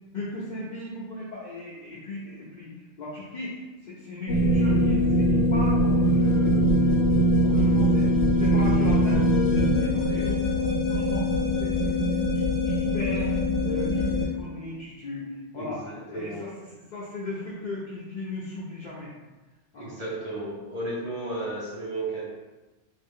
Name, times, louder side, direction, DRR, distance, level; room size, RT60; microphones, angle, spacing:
voice 1, 0.1-6.7 7.1-8.1 8.4-9.2 9.5-11.2 11.6-15.8 16.1-16.5 16.9-19.1 19.7-20.0, left 2 dB, 50° left, -7 dB, 0.7 m, -37 dB
sound 1, 4.3-14.3, equal, 75° left, 0.9 m, -22 dB
voice 2, 7.4-8.1 8.6-8.7 9.0-9.2 10.1-10.3 15.5-16.5 19.8-22.3, right 2 dB, 40° right, -8 dB, 1.1 m, -35 dB
2.7 x 2.4 x 3.5 m, 1.2 s
omnidirectional pair, 1.1 m